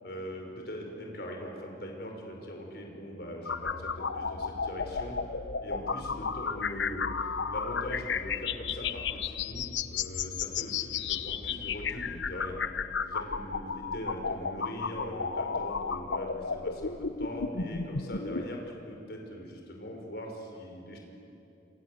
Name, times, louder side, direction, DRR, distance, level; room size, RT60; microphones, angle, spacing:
voice 1, 0.0-5.2 5.6-12.6 13.1-16.9 17.2-21.0, equal, 60° left, 1 dB, 5.4 m, -41 dB
sound 1, 3.4-18.4, left 5 dB, 85° left, 1.0 m, -33 dB
28.0 x 27.0 x 7.9 m, 2.8 s
head